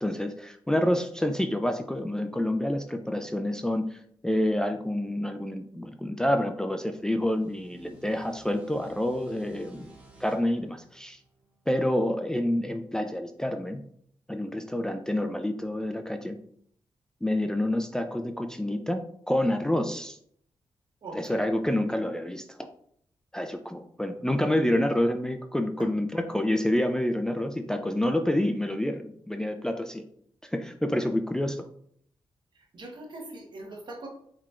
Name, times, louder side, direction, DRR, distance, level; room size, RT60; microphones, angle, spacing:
voice 1, 0.0-9.9 10.2-11.2 11.7-13.8 14.3-16.4 17.2-20.2 21.1-22.7 23.3-30.0 30.4-31.6, left 1 dB, 5° left, 6 dB, 0.3 m, -28 dB
sound 1, 6.9-12.3, right 1 dB, 15° right, 1.0 m, -55 dB
voice 2, 21.0-21.5 25.8-25.9 32.5-34.1, right 2 dB, 55° right, 1 dB, 1.1 m, -41 dB
4.2 x 3.8 x 2.4 m, 0.66 s
cardioid pair, 75°, 9 cm